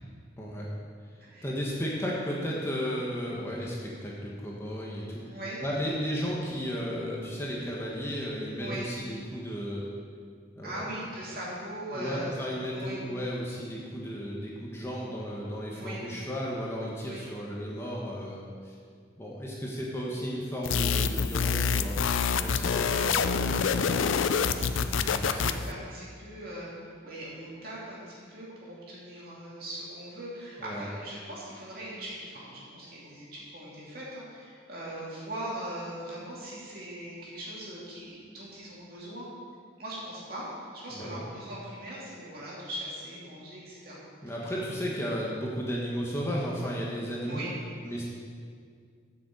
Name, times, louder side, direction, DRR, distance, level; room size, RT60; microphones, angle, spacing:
voice 1, 0.4-0.7 1.4-9.9 10.6-10.9 11.9-18.7 19.2-22.0 22.4-24.0 24.6-25.6 30.6-30.9 40.9-41.2 44.2-47.4 47.8-48.1, equal, 15° left, -4 dB, 1.2 m, -34 dB
voice 2, 5.2-5.6 8.6-8.9 10.6-12.3 12.7-13.0 15.7-16.0 17.0-17.2 24.4-39.3 39.8-44.0 44.4-44.5 44.8-44.9 47.3-47.5, right 1 dB, 50° right, -6 dB, 2.9 m, -40 dB
sound 1, 20.6-25.7, left 6 dB, 90° left, 0.5 m, -27 dB
8.7 x 6.6 x 7.3 m, 2.1 s
head